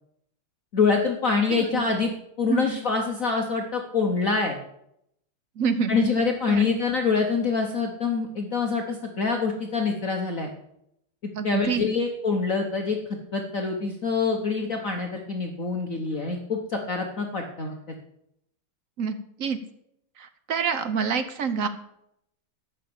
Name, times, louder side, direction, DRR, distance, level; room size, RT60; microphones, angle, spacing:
voice 1, 0.7-2.1 2.4-4.6 5.9-10.5 11.4-13.0 13.3-17.8, left 4 dB, 45° left, 3 dB, 1.2 m, -25 dB
voice 2, 1.5-1.8 2.5-2.8 5.6-6.1 6.5-6.7 11.4-11.8 19.0-19.6 20.2-21.7, right 6 dB, 55° right, 10 dB, 0.9 m, -27 dB
12.5 x 5.8 x 8.7 m, 0.77 s
omnidirectional pair, 2.4 m